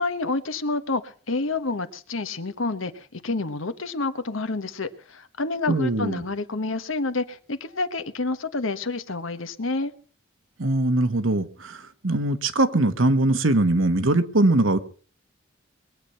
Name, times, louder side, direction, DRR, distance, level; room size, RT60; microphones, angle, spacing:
voice 1, 0.0-9.9, left 3 dB, 85° left, 1.3 m, -28 dB
voice 2, 5.7-6.2 10.6-14.8, right 2 dB, 85° right, 1.4 m, -21 dB
21.5 x 8.3 x 5.7 m
head